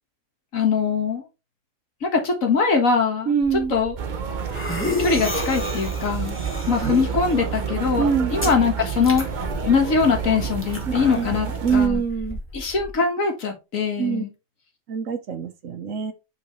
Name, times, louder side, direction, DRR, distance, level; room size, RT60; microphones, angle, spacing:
voice 1, 0.5-1.2 2.0-3.3 3.7-4.0 5.0-6.4 6.7-8.1 8.3-9.3 9.6-11.5 11.7-12.0 12.5-14.3, left 5 dB, 80° left, 1.9 m, -22 dB
voice 2, 3.2-3.7 6.8-6.9 8.0-8.3 10.9-11.3 11.6-12.4 14.0-14.2 14.9-16.1, right 6 dB, 75° right, 1.4 m, -24 dB
sound 1, 3.4-12.9, left 1 dB, 10° left, 1.3 m, -33 dB
sound 2, 4.0-11.9, right 7 dB, 45° right, 0.7 m, -29 dB
7.6 x 4.1 x 3.1 m
omnidirectional pair, 1.4 m